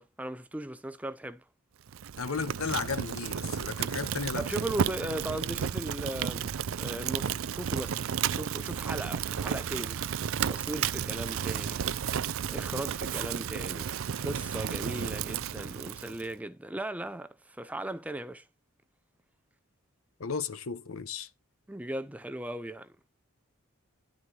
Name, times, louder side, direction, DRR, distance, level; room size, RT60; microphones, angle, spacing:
voice 1, 0.0-1.4 4.4-10.0 10.5-11.9 12.5-13.9 14.2-18.5 21.7-23.0, right 1 dB, 5° right, 0.4 m, -37 dB
Fire, 1.9-16.3, right 8 dB, 70° right, 0.4 m, -33 dB
voice 2, 2.2-4.4 20.2-21.3, left 5 dB, 75° left, 0.8 m, -34 dB
11.0 x 4.0 x 6.2 m
head